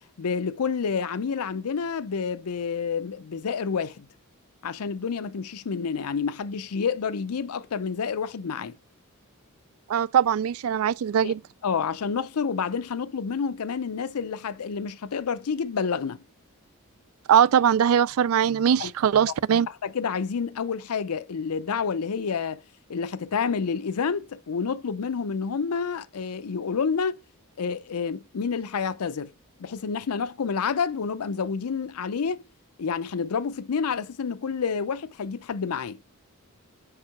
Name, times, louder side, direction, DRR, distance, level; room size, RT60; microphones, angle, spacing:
voice 1, 0.2-4.1 4.6-8.8 11.2-11.3 11.6-16.2 18.8-18.9 19.8-22.6 22.9-27.2 27.6-29.3 29.6-32.4 32.8-36.0, left 6 dB, 85° left, 0.5 m, -29 dB
voice 2, 9.9-11.4 17.3-19.7, right 8 dB, 70° right, 0.3 m, -21 dB
5.4 x 4.8 x 5.8 m
head